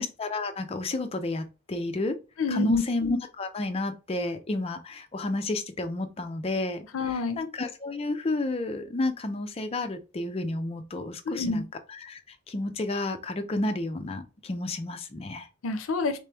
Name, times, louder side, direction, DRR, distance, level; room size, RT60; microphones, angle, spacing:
voice 1, 0.0-2.1 2.5-6.9 7.4-11.6 12.0-12.2 12.5-15.5, left 2 dB, 30° left, 0.4 m, -31 dB
voice 2, 2.4-2.8 6.9-7.4 11.3-11.7 15.6-16.2, left 4 dB, 80° left, 0.5 m, -27 dB
3.3 x 3.0 x 3.3 m
head